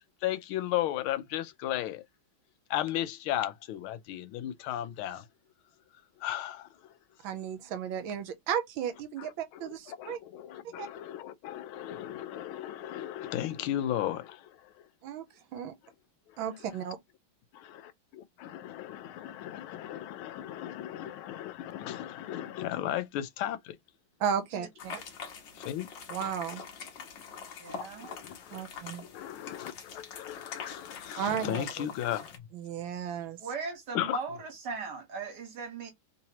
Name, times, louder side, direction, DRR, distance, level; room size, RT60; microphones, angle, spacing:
voice 1, 0.2-2.0 2.7-5.2 6.2-6.7 9.9-14.5 17.5-23.8 25.5-25.9 28.0-28.6 29.1-32.2 33.9-34.2, left 12 dB, 85° left, 1.4 m, -35 dB
voice 2, 7.2-10.2 10.8-10.9 15.0-15.7 16.4-17.0 24.2-25.0 26.1-26.6 28.5-29.0 31.2-31.9 32.5-33.4, right 8 dB, 75° right, 1.4 m, -34 dB
sound 1, 24.8-32.4, left 6 dB, 65° left, 1.6 m, -44 dB
voice 3, 27.6-28.1 33.4-35.9, right 5 dB, 60° right, 1.6 m, -38 dB
3.8 x 2.8 x 2.8 m
omnidirectional pair, 2.3 m